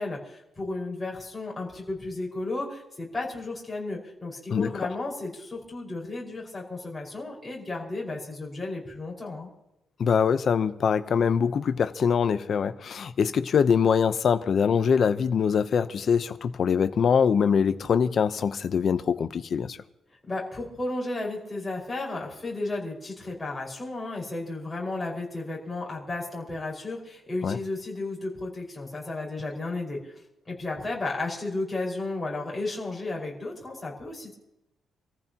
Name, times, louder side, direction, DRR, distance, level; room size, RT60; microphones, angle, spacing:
voice 1, 0.0-9.5 20.3-30.1 30.5-34.3, left 2 dB, 10° left, 5.2 m, -33 dB
voice 2, 10.0-19.8 27.4-27.6, left 6 dB, 45° left, 0.8 m, -23 dB
27.5 x 14.5 x 2.9 m
cardioid pair, 165°, 0 cm